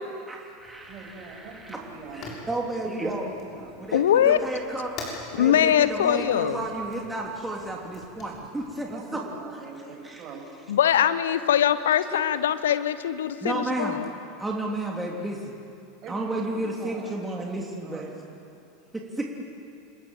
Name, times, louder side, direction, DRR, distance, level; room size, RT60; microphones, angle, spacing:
voice 1, 0.3-1.8 2.1-3.3 3.8-9.2 10.0-10.2 13.4-14.0 14.4-15.5 16.1-18.1 18.9-19.3, right 2 dB, 10° right, -1 dB, 3.2 m, -32 dB
Fire, 0.6-9.0, left 2 dB, 40° left, 6.8 m, -45 dB
voice 2, 0.9-2.3 2.8-3.7 8.1-10.4 16.0-17.4 17.8-18.2, right 4 dB, 40° right, 0 dB, 7.6 m, -43 dB
voice 3, 3.9-4.4 5.3-6.6 10.7-14.1, left 10 dB, 70° left, 13 dB, 1.0 m, -22 dB
28.0 x 21.5 x 7.8 m, 2.6 s
figure-of-eight pair, 85°, 0 cm